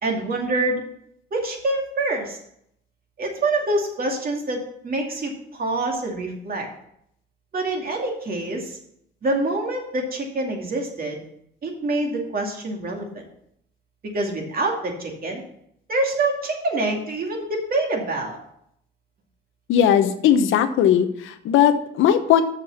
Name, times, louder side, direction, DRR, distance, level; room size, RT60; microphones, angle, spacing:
voice 1, 0.0-0.8 1.3-2.4 3.2-6.7 7.5-8.8 9.2-11.2 11.6-13.2 14.1-15.4 15.9-18.4, right 2 dB, 45° right, 1 dB, 2.5 m, -26 dB
voice 2, 19.7-22.4, left 9 dB, 85° left, 10 dB, 0.9 m, -18 dB
6.7 x 6.0 x 7.1 m, 0.73 s
cardioid pair, 90°, 20 cm